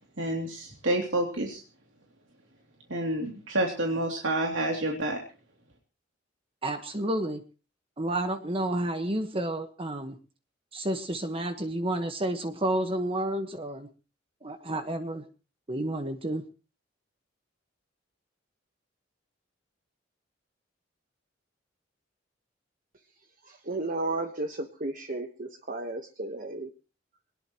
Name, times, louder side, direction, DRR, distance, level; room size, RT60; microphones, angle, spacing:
voice 1, 0.2-1.6 2.9-5.2, right 1 dB, 85° right, 1 dB, 2.9 m, -28 dB
voice 2, 6.6-7.4 8.0-10.1 10.7-13.9 14.4-15.2 15.7-16.4, right 1 dB, 30° right, 6 dB, 1.4 m, -30 dB
voice 3, 23.5-26.7, right 2 dB, 45° right, 5 dB, 1.3 m, -33 dB
21.5 x 19.0 x 3.1 m, 0.36 s
head